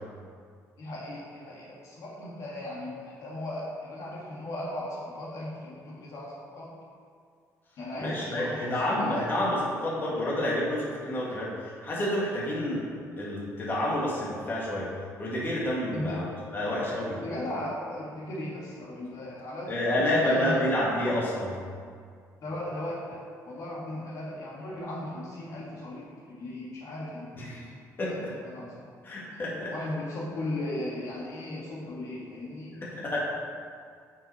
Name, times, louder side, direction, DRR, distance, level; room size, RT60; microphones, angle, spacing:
voice 1, 0.8-6.7 7.8-9.3 15.9-16.2 17.2-20.6 22.4-27.7 28.1-28.9 29.7-32.8 33.1-33.2, left 1 dB, 60° left, -5 dB, 2.0 m, -37 dB
voice 2, 8.0-12.9 13.2-14.9 15.2-16.2 16.5-17.2 19.7-21.6 27.4-27.6 28.0-28.1 29.0-29.7 32.8-33.2, left 1 dB, 35° left, -5 dB, 2.1 m, -29 dB
9.0 x 5.9 x 4.3 m, 2.1 s
cardioid pair, 125°, 6 cm